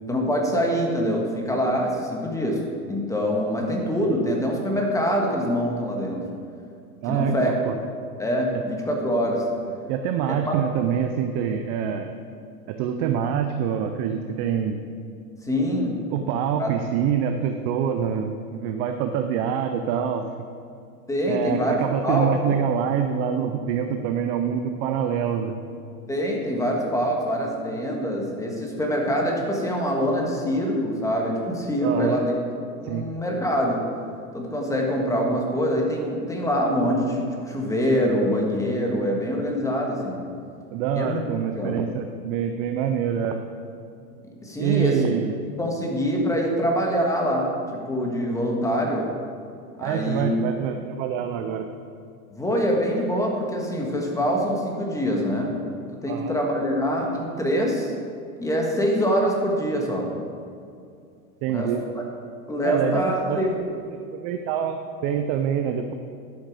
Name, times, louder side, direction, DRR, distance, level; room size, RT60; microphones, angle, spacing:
voice 1, 0.1-2.6 2.9-6.2 7.1-7.5 8.2-9.4 10.3-10.5 15.4-16.0 16.6-16.7 21.1-21.8 22.0-22.5 26.1-32.3 32.8-33.8 34.3-40.2 40.9-41.2 41.5-41.8 44.4-45.0 45.6-49.1 49.8-50.3 52.3-55.5 56.0-57.9 58.4-60.1 61.5-61.7 62.5-63.6, equal, 5° left, 0 dB, 1.5 m, -24 dB
voice 2, 7.0-7.8 8.5-8.6 9.9-12.1 12.7-14.8 16.1-20.3 21.2-25.6 31.8-32.2 32.8-33.1 40.7-43.4 44.6-45.4 49.8-51.7 56.1-56.3 61.4-61.8 62.6-63.4 64.1-65.9, right 8 dB, 30° right, 6 dB, 0.4 m, -25 dB
11.5 x 6.5 x 4.8 m, 2.4 s
hypercardioid pair, 125°, 46 cm